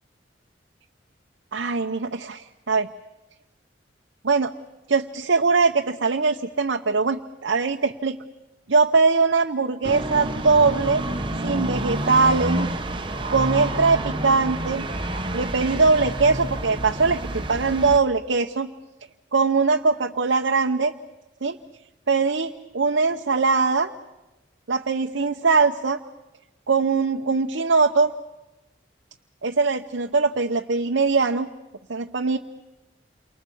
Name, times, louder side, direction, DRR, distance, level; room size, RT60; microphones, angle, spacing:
voice 1, 1.5-2.9 4.2-4.5 4.9-8.2 8.7-11.0 11.4-12.7 13.3-14.9 15.3-18.7 19.3-20.9 21.4-21.6 22.1-23.9 24.7-26.0 26.7-28.1 29.4-31.5 31.9-32.4, right 4 dB, 75° right, 3 dB, 0.8 m, -21 dB
sound 1, 9.8-18.0, right 1 dB, 25° right, 1.1 m, -28 dB
28.5 x 24.0 x 7.1 m, 1.0 s
head